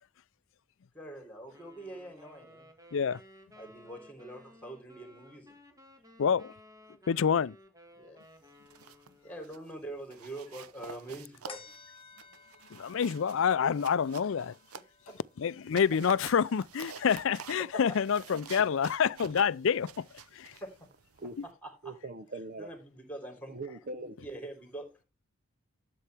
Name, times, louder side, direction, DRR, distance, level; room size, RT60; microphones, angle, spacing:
voice 1, 0.9-2.7 3.6-5.6 8.0-8.2 9.2-11.7 15.1-15.2 17.7-17.8 20.6-20.9 21.4-21.9 22.6-23.6 24.2-24.9, right 1 dB, 5° left, 3.7 m, -44 dB
sound 1, 1.5-9.5, left 1 dB, 15° right, 1.8 m, -57 dB
voice 2, 6.2-6.5 7.1-7.6 12.7-14.6 15.4-20.1 20.3-20.6 21.4-21.5, left 7 dB, 60° left, 0.4 m, -27 dB
sound 2, 8.5-9.1 9.4-9.7 10.1-15.2 15.6-21.5, right 6 dB, 90° right, 0.7 m, -49 dB
sound 3, 11.5-18.2 18.7-18.8, left 5 dB, 25° left, 1.4 m, -56 dB
voice 3, 21.8-22.7 23.5-24.3, right 2 dB, 40° right, 0.7 m, -41 dB
12.5 x 7.7 x 3.4 m
head